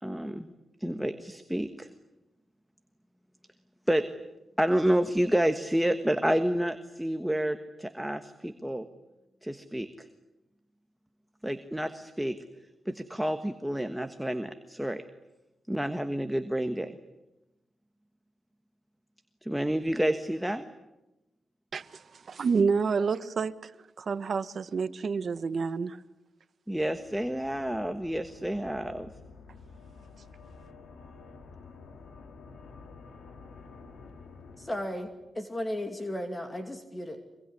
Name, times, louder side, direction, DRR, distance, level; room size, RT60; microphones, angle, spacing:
voice 1, 0.0-0.5 0.8-1.9 3.9-4.0 4.6-8.9 9.4-10.1 11.4-12.4 12.8-15.0 15.7-17.0 19.4-20.6 26.7-29.1, right 1 dB, 5° right, 8 dB, 1.4 m, -29 dB
voice 2, 22.3-23.7 24.0-26.0, right 5 dB, 50° right, 13 dB, 1.2 m, -28 dB
eerie minelift bell, 26.8-35.3, left 4 dB, 80° left, 3.4 m, -50 dB
voice 3, 34.6-37.3, left 1 dB, 15° left, 5 dB, 2.5 m, -35 dB
25.0 x 23.0 x 9.9 m, 0.99 s
wide cardioid pair, 115°, 0 cm